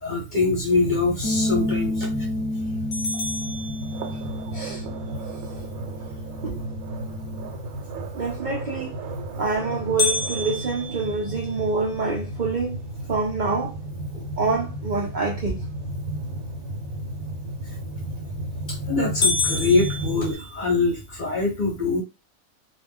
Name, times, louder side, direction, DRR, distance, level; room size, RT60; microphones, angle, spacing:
voice 1, 0.0-2.3 5.5-5.7 18.7-22.0, left 3 dB, 40° left, 0.8 m, -24 dB
sound 1, 0.7-20.4, right 1 dB, 80° right, 1.0 m, -33 dB
sound 2, 1.2-7.5, left 1 dB, 10° left, 0.8 m, -31 dB
sound 3, 2.9-4.5 10.0-12.1 12.7-12.8 13.3-13.4 14.0-14.3 17.9-18.4 18.7-18.8 19.2-20.9, left 3 dB, 80° left, 1.1 m, -28 dB
voice 2, 4.5-4.8 6.4-6.6 8.1-9.0 9.4-12.8 13.1-13.8 14.1-15.6, right 4 dB, 60° right, 0.4 m, -26 dB
2.4 x 2.1 x 3.4 m
omnidirectional pair, 1.5 m